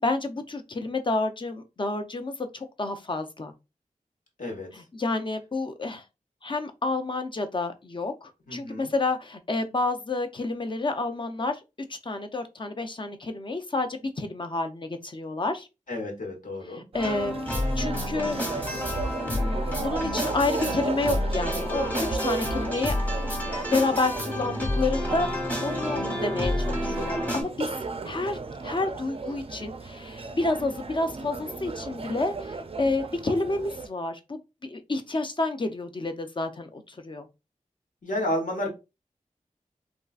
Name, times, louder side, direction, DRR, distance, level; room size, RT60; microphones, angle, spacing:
voice 1, 0.0-3.5 4.7-6.0 6.4-11.6 11.9-15.7 16.7-17.4 17.8-18.4 19.2-22.9 23.7-25.3 25.6-27.7 28.0-37.3, left 3 dB, 35° left, 0.5 m, -29 dB
voice 2, 8.5-8.9 15.9-16.8 26.1-26.4 38.0-38.7, left 1 dB, 75° left, 1.1 m, -31 dB
sound 1, 16.9-33.9, right 3 dB, 45° right, 0.4 m, -35 dB
sound 2, 17.0-27.4, left 1 dB, 10° left, 1.0 m, -30 dB
3.6 x 2.4 x 2.3 m
wide cardioid pair, 75°, 14 cm